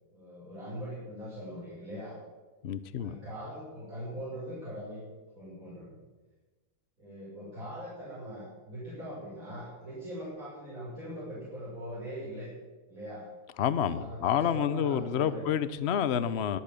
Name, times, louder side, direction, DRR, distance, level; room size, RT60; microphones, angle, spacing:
voice 1, 0.1-2.2 3.0-5.0 5.3-6.0 7.0-12.5 12.9-13.3 13.9-15.4, equal, 40° right, -9 dB, 6.2 m, -41 dB
voice 2, 2.6-3.2 13.6-16.6, left 9 dB, 70° left, 14 dB, 0.6 m, -29 dB
23.0 x 8.6 x 6.9 m, 1.2 s
omnidirectional pair, 2.2 m